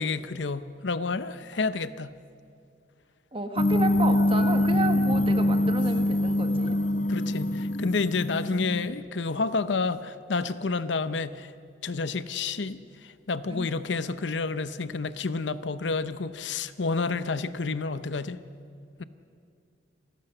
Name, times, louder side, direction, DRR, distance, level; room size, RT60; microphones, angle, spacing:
voice 1, 0.0-2.1 7.1-11.5 11.8-18.4 19.0-19.1, left 4 dB, 80° left, 13 dB, 0.7 m, -29 dB
voice 2, 3.3-6.8 13.5-13.7, right 2 dB, 30° right, 6 dB, 1.5 m, -32 dB
sound 1, 3.6-8.9, left 1 dB, 45° left, 0.9 m, -24 dB
27.0 x 15.5 x 6.7 m, 2.4 s
head